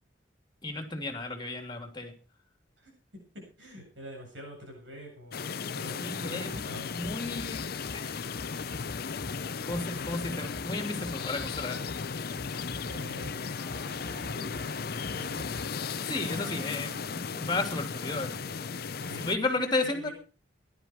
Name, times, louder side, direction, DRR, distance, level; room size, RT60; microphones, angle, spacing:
voice 1, 0.6-2.1 6.0-6.6 6.9-7.6 7.9-8.5 9.6-11.8 16.1-18.3 19.2-20.1, left 2 dB, 25° left, 6 dB, 3.0 m, -33 dB
voice 2, 3.3-6.9 12.8-13.6 14.0-14.6 15.1-16.7 19.0-20.1, equal, 75° right, 1 dB, 7.7 m, -47 dB
sound 1, 5.3-19.4, left 5 dB, 55° left, 0.6 m, -36 dB
sound 2, 6.5-15.8, left 1 dB, 5° left, 2.3 m, -48 dB
sound 3, 13.6-19.2, left 2 dB, 60° right, 4.1 m, -49 dB
17.0 x 12.0 x 4.7 m, 0.36 s
head